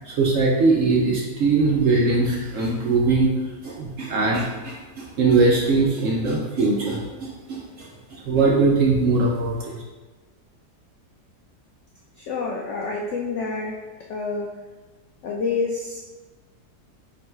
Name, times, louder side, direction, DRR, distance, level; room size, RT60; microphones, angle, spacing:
voice 1, 0.1-3.3 3.6-7.6 8.3-9.7, right 3 dB, 65° right, -3 dB, 0.8 m, -21 dB
voice 2, 12.2-13.8 14.1-14.5 15.2-16.0, left 4 dB, 75° left, -1 dB, 0.6 m, -27 dB
3.9 x 2.2 x 4.2 m, 1.3 s
omnidirectional pair, 1.8 m